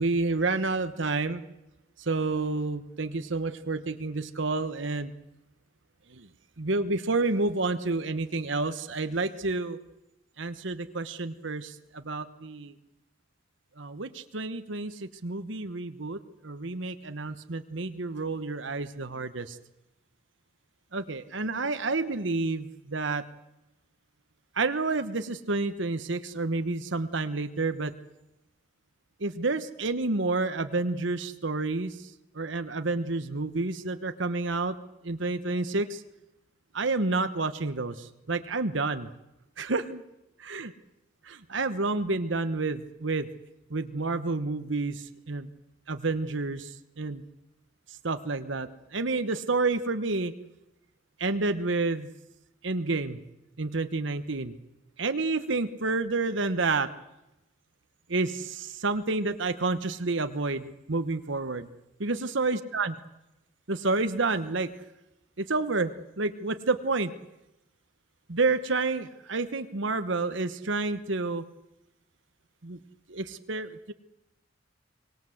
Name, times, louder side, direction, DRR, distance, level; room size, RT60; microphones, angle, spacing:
voice 1, 0.0-1.4 2.0-5.1 6.1-6.3 6.6-9.8 10.4-12.7 13.8-19.6 20.9-23.2 24.5-27.9 29.2-34.8 35.0-36.0 36.7-39.1 39.6-40.0 40.4-40.7 41.3-43.3 43.7-45.5 45.9-47.2 47.9-50.3 51.2-52.1 52.6-53.2 53.6-54.5 55.0-56.9 58.1-61.7 62.0-62.9 63.7-64.7 65.4-67.1 68.3-71.4 72.6-72.8 73.1-73.9, right 3 dB, 65° right, 10 dB, 1.2 m, -29 dB
24.0 x 20.0 x 7.9 m, 0.92 s
head